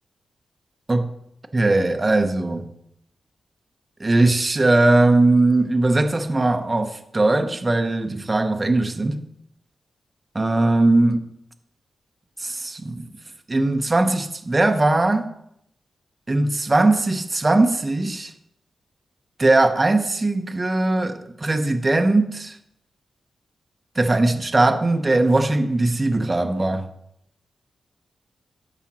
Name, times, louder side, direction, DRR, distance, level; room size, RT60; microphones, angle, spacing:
voice 1, 1.5-2.7 4.0-9.3 10.3-11.2 12.4-13.1 13.5-15.3 16.3-18.3 19.4-22.6 24.0-26.9, right 2 dB, 30° right, 0.6 m, -20 dB
13.0 x 4.9 x 2.9 m
cardioid pair, 80°, 0 cm